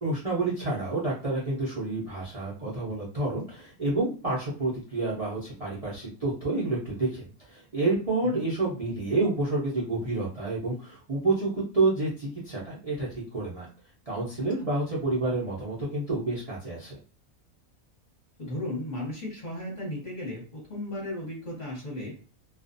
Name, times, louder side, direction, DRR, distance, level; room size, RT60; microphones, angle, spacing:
voice 1, 0.0-13.7 14.1-17.0, right 2 dB, 35° right, -6 dB, 0.6 m, -29 dB
voice 2, 18.4-22.1, left 1 dB, 35° left, -4 dB, 1.0 m, -35 dB
2.4 x 2.4 x 2.5 m, 0.38 s
omnidirectional pair, 1.4 m